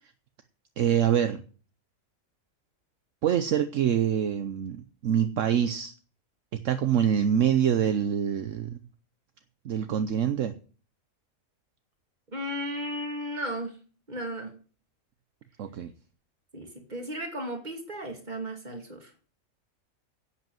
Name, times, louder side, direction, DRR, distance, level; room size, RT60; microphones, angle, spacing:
voice 1, 0.8-1.4 3.2-5.9 6.5-8.8 9.6-10.5 15.6-15.9, right 9 dB, 65° right, 10 dB, 1.1 m, -25 dB
voice 2, 12.3-13.8 14.1-14.5 16.5-19.3, equal, 30° right, 4 dB, 2.6 m, -35 dB
11.0 x 7.8 x 7.7 m, 0.40 s
omnidirectional pair, 1.4 m